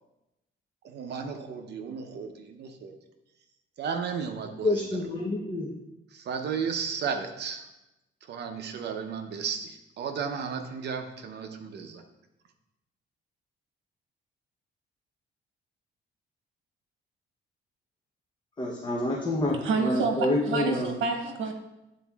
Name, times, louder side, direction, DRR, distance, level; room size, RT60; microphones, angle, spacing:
voice 1, 0.8-2.9 3.8-4.8 6.1-7.6 8.2-12.0, right 6 dB, 60° right, 5 dB, 0.7 m, -34 dB
voice 2, 4.6-5.7 18.6-20.9, left 2 dB, 25° left, -3 dB, 0.8 m, -28 dB
voice 3, 19.6-21.5, right 4 dB, 85° right, 4 dB, 1.0 m, -28 dB
9.9 x 4.1 x 2.3 m, 0.94 s
cardioid pair, 140°, 20 cm